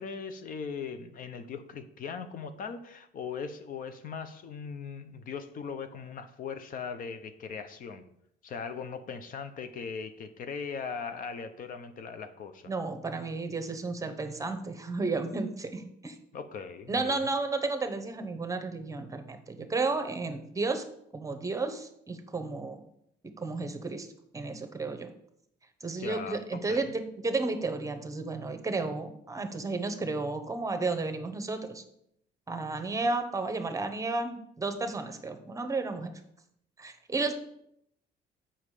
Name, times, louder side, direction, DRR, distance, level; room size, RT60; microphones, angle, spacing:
voice 1, 0.0-8.0 8.4-12.7 16.3-17.3 19.6-19.8 26.0-26.9, left 6 dB, 55° left, 9 dB, 0.8 m, -39 dB
voice 2, 12.7-16.2 16.9-20.8 21.1-22.8 23.4-24.1 24.3-25.1 25.8-31.8 32.5-36.1 36.8-37.4, right 3 dB, 20° right, 8 dB, 1.0 m, -32 dB
7.3 x 5.7 x 4.9 m, 0.73 s
cardioid pair, 110°, 17 cm